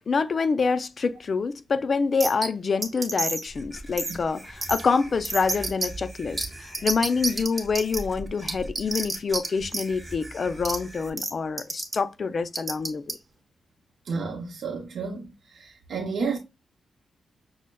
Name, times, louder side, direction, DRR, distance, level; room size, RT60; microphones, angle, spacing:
voice 1, 0.1-6.4 6.8-13.2, left 5 dB, 50° left, 0.3 m, -26 dB
sound 1, 2.2-2.5 2.8-3.5 4.0-4.1 4.6-4.8 5.2-5.9 6.4-6.5 6.7-8.0 8.5-9.5 9.7-9.8 10.6-10.8 11.2-11.3 11.6-11.9 12.5-13.1, right 3 dB, 30° right, 0.9 m, -28 dB
sound 2, 3.5-11.1, right 1 dB, 10° right, 1.0 m, -42 dB
voice 2, 14.1-16.4, right 4 dB, 75° right, 0.7 m, -31 dB
6.2 x 2.1 x 2.2 m
cardioid pair, 90°, 0 cm